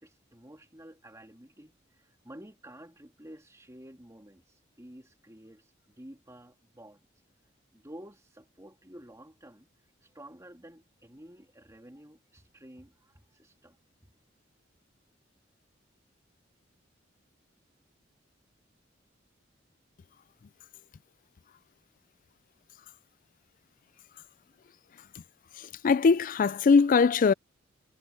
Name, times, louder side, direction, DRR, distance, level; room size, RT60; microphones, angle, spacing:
voice 1, 0.0-7.0 7.7-9.7 10.0-14.1, right 1 dB, 15° right, 3.0 m, -51 dB
voice 2, 25.8-27.3, left 5 dB, 45° left, 0.4 m, -21 dB
head